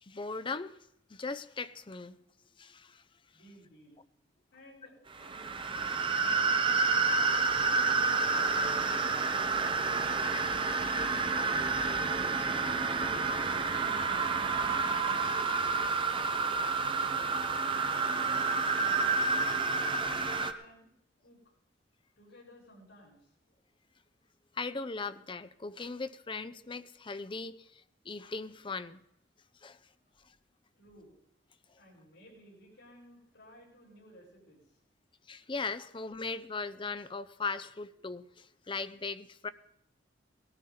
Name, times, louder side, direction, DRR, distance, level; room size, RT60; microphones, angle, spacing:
voice 1, 0.0-0.8 1.1-2.2 2.6-3.0 9.5-9.7 10.2-10.3 10.8-10.9 11.8-12.3 13.4-13.5 16.6-17.0 18.2-18.3 19.8-20.3 24.5-29.0 29.6-29.8 30.3-30.4 31.7-31.8 35.3-39.5, left 4 dB, 30° left, 13 dB, 0.6 m, -39 dB
voice 2, 3.3-4.0 4.5-5.5 6.1-7.4 8.0-9.1 10.0-10.4 14.7-15.5 17.0-17.7 18.2-19.0 20.2-20.9 21.2-21.4 22.2-23.2 30.8-31.1 31.8-34.6, equal, 75° left, -5 dB, 7.7 m, -57 dB
sound 1, 5.1-20.5, right 4 dB, 30° right, 0.8 m, -29 dB
18.0 x 13.5 x 3.9 m, 0.76 s
head